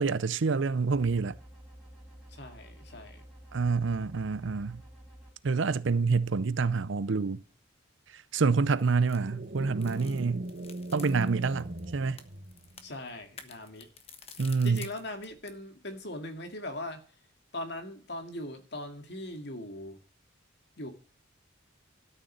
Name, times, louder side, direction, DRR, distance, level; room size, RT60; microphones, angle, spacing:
voice 1, 0.0-1.4 3.5-4.8 5.4-7.4 8.1-10.5 10.9-12.2 14.4-14.8, right 4 dB, 65° right, 0.6 m, -27 dB
sound 1, 0.9-5.3, right 1 dB, ahead, 4.0 m, -51 dB
voice 2, 2.3-3.2 12.8-13.9 14.6-17.0 17.5-20.0 20.8-20.9, left 1 dB, 55° left, 2.2 m, -40 dB
sound 2, 8.6-15.6, left 6 dB, 30° left, 1.2 m, -52 dB
sound 3, 9.2-12.9, right 1 dB, 50° right, 1.3 m, -39 dB
13.0 x 6.6 x 6.6 m
head